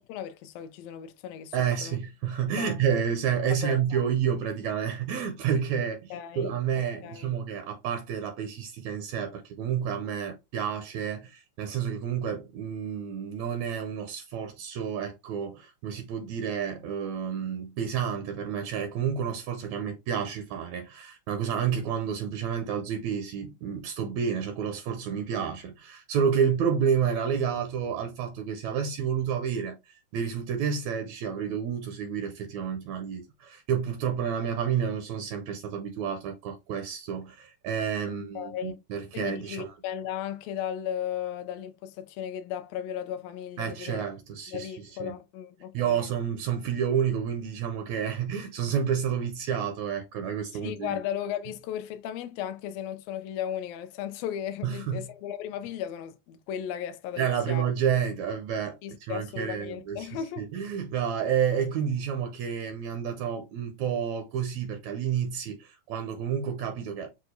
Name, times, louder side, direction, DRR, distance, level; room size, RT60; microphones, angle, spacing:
voice 1, 0.1-1.5 1.8-2.0 2.6-2.8 3.6-4.0 6.1-6.6 7.0-7.3 38.3-38.8 39.1-44.1 44.5-46.1 50.5-57.6 58.8-60.5, left 9 dB, 85° left, 1.4 m, -36 dB
voice 2, 1.5-39.7 43.6-44.7 45.0-45.1 45.7-51.0 54.6-55.1 57.2-67.2, right 7 dB, 80° right, 1.8 m, -30 dB
6.2 x 2.3 x 2.6 m
omnidirectional pair, 3.5 m